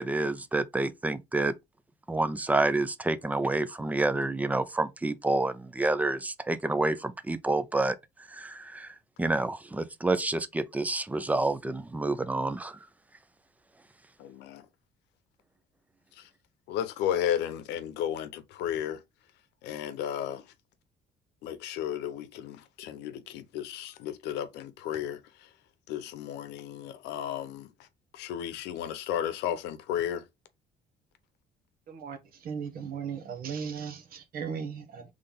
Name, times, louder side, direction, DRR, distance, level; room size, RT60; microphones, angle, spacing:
voice 1, 0.0-1.5 2.1-8.0 8.3-12.8, right 2 dB, 10° right, 0.5 m, -28 dB
voice 2, 14.2-14.7 16.2-16.3 16.7-19.0 19.6-20.4 21.4-25.5 25.9-27.7 28.1-30.2, left 10 dB, 85° left, 0.8 m, -33 dB
voice 3, 31.9-32.2 32.4-35.0, right 6 dB, 60° right, 1.1 m, -36 dB
3.9 x 3.3 x 3.5 m
cardioid pair, 110°, 17 cm